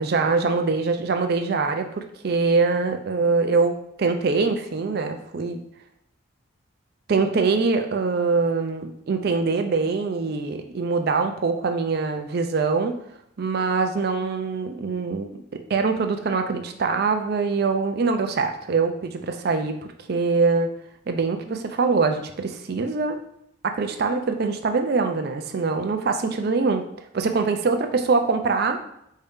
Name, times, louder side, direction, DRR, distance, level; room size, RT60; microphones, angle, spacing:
voice 1, 0.0-3.7 4.0-5.6 7.1-12.9 13.4-15.4 15.7-20.7 21.1-23.2 23.6-26.8 27.1-28.8, right 4 dB, 50° right, 6 dB, 0.4 m, -23 dB
4.6 x 2.7 x 3.5 m, 0.76 s
head